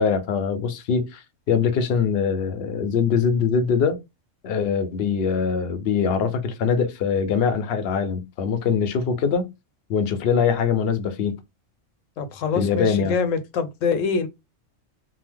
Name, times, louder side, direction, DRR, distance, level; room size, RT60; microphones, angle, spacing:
voice 1, 0.0-4.0 4.4-9.5 9.9-11.4 12.6-13.1, left 6 dB, 65° left, 0.7 m, -23 dB
voice 2, 12.2-14.3, left 5 dB, 85° left, 1.0 m, -25 dB
2.8 x 2.0 x 3.3 m
omnidirectional pair, 1.3 m